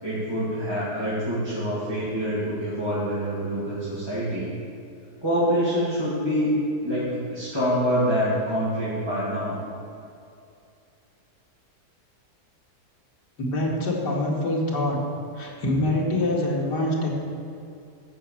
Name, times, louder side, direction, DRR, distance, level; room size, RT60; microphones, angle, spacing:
voice 1, 0.0-4.5 5.2-6.5 6.8-9.6, equal, 15° right, -11 dB, 2.6 m, -26 dB
voice 2, 13.4-15.0 15.4-17.1, left 1 dB, 85° left, -3 dB, 2.7 m, -25 dB
13.5 x 5.5 x 7.5 m, 2.5 s
omnidirectional pair, 1.8 m